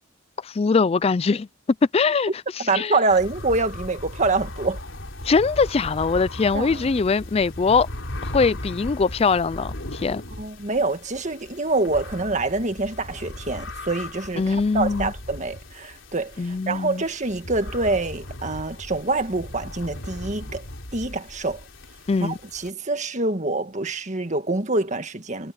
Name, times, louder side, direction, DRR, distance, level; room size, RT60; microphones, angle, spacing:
voice 1, 0.4-1.5 1.9-2.9 5.2-7.9 8.2-10.2 14.4-15.1 16.4-17.0 22.1-22.4, left 4 dB, 30° left, 0.4 m, -22 dB
voice 2, 2.7-4.8 6.5-6.9 10.4-20.6 20.9-21.6 22.2-25.5, right 3 dB, 40° right, 1.8 m, -26 dB
sound 1, 3.1-22.7, left 1 dB, 75° left, 4.0 m, -37 dB
head